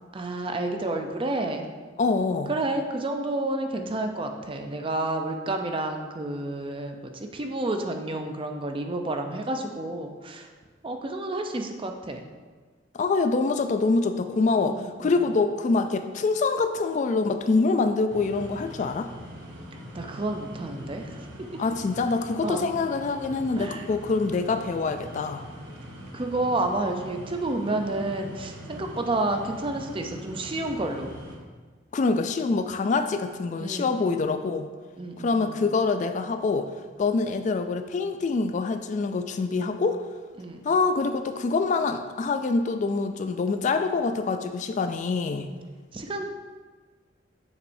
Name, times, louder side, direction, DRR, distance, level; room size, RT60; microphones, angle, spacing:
voice 1, 0.1-1.7 2.5-10.5 10.8-12.2 14.6-15.1 19.9-21.6 22.4-22.7 23.6-23.9 26.1-31.1 33.6-34.4 35.0-35.6 40.4-40.6 45.9-46.2, right 2 dB, 30° right, 4 dB, 0.5 m, -30 dB
voice 2, 2.0-2.5 12.9-19.1 21.6-25.4 31.9-34.7 35.2-36.7 37.0-40.0 40.6-45.5, left 4 dB, 40° left, 8 dB, 0.3 m, -25 dB
sound 1, 18.1-31.4, equal, 75° right, 1.4 m, -42 dB
7.3 x 6.3 x 2.6 m, 1.5 s
head